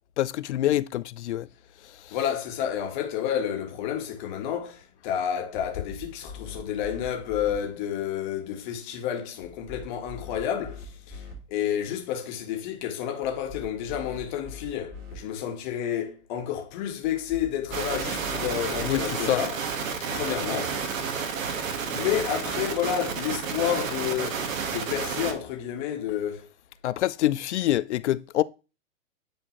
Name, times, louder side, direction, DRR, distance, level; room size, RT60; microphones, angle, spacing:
voice 1, 0.2-1.5 2.1-2.2 18.8-19.4 26.8-28.4, left 13 dB, 60° left, 0.5 m, -26 dB
voice 2, 2.1-19.6 20.1-20.8 21.9-26.5, left 9 dB, 35° left, 1.6 m, -30 dB
sound 1, 5.6-7.5 9.4-11.3 13.2-15.1 17.0-19.0, left 4 dB, 25° right, 3.0 m, -43 dB
sound 2, 17.7-25.3, right 6 dB, 75° right, 1.8 m, -31 dB
10.0 x 4.5 x 3.2 m
hypercardioid pair, 155°, 40 cm